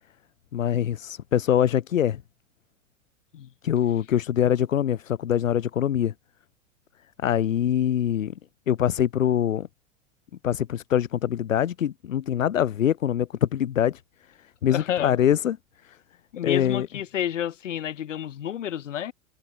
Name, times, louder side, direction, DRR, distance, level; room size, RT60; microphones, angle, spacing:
voice 1, 0.5-2.2 3.6-6.1 7.2-8.3 8.7-9.7 10.4-14.0 14.6-15.6 15.8-16.0 16.4-16.9, left 10 dB, 85° left, 0.5 m, -24 dB
voice 2, 14.7-15.2 16.3-19.1, left 10 dB, 70° left, 3.6 m, -30 dB
figure-of-eight pair, 80°, 38 cm